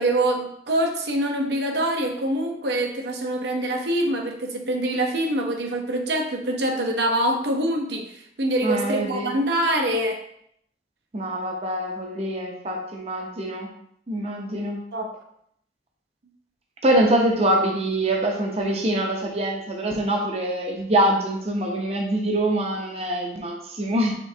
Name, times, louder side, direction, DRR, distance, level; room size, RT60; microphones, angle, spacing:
voice 1, 0.0-8.1 8.4-10.2 14.9-15.1, right 1 dB, 70° right, 2 dB, 0.7 m, -24 dB
voice 2, 8.6-9.3 11.1-13.7 14.1-14.8 16.8-24.1, right 1 dB, 35° right, 0 dB, 0.6 m, -24 dB
5.1 x 3.6 x 2.7 m, 0.71 s
head